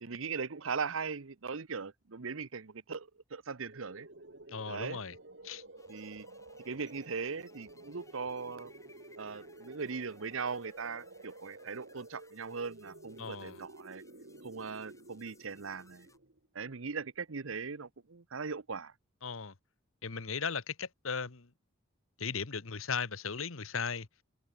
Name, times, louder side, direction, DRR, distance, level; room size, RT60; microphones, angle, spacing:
voice 1, 0.0-4.1 4.7-5.0 5.9-6.3 6.6-8.7 9.2-14.0 14.4-16.1 16.5-18.9, right 5 dB, 80° right, 0.9 m, -39 dB
sound 1, 3.7-16.5, right 2 dB, 60° right, 2.1 m, -52 dB
voice 2, 4.5-5.1 5.4-5.6 13.2-13.6 19.2-19.5 20.0-21.5 22.2-24.1, left 5 dB, 80° left, 1.3 m, -37 dB
sound 2, 5.8-16.2, left 3 dB, 15° left, 6.0 m, -64 dB
head